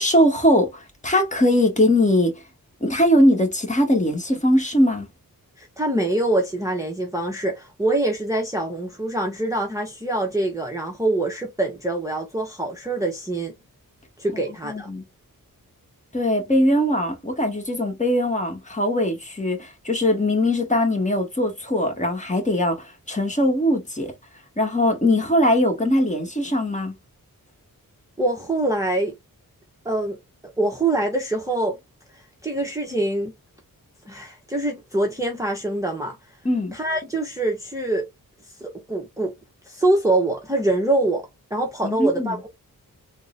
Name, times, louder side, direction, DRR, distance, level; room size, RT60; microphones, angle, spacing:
voice 1, 0.0-2.3 2.8-5.1 14.6-15.0 16.1-24.1 24.6-26.9 36.4-36.8 41.8-42.3, left 1 dB, 20° left, 1.3 m, -21 dB
voice 2, 5.6-13.5 14.2-14.9 28.2-29.1 29.8-30.2 30.6-31.8 32.1-33.3 34.1-36.2 36.7-38.1 38.6-39.3 39.7-42.5, right 2 dB, 10° right, 0.7 m, -24 dB
3.7 x 2.1 x 3.7 m
wide cardioid pair, 105°, 35 cm